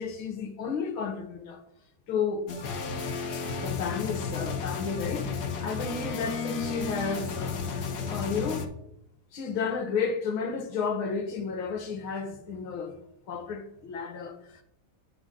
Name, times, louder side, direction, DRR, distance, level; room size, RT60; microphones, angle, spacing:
voice 1, 0.0-1.6 2.1-2.5 3.3-8.7 9.3-13.0 13.3-14.6, left 5 dB, 75° left, 2.1 m, -32 dB
sound 1, 2.5-8.7, left 5 dB, 55° left, 1.4 m, -33 dB
9.8 x 8.1 x 3.8 m
omnidirectional pair, 2.3 m